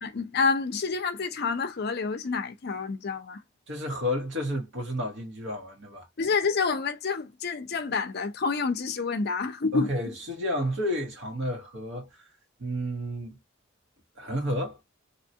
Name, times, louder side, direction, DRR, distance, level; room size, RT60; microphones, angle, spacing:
voice 1, 0.0-3.4 6.2-10.1, left 4 dB, 50° left, 0.5 m, -28 dB
voice 2, 3.7-6.1 9.7-12.3 12.6-13.4 14.2-14.8, equal, 60° right, 1.1 m, -31 dB
2.8 x 2.3 x 2.7 m
head